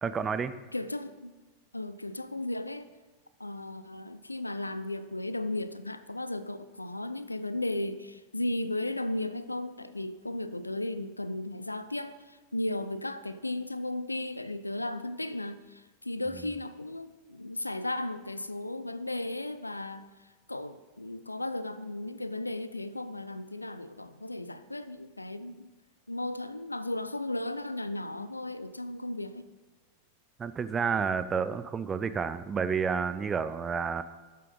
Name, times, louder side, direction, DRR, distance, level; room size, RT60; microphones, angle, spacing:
voice 1, 0.0-0.5 30.4-34.0, right 6 dB, 20° right, 0.5 m, -30 dB
voice 2, 0.7-1.3 1.7-2.9 3.4-25.7 26.1-29.5, left 1 dB, 85° left, 0.4 m, -35 dB
12.0 x 7.5 x 3.9 m
figure-of-eight pair, 90°, 0 cm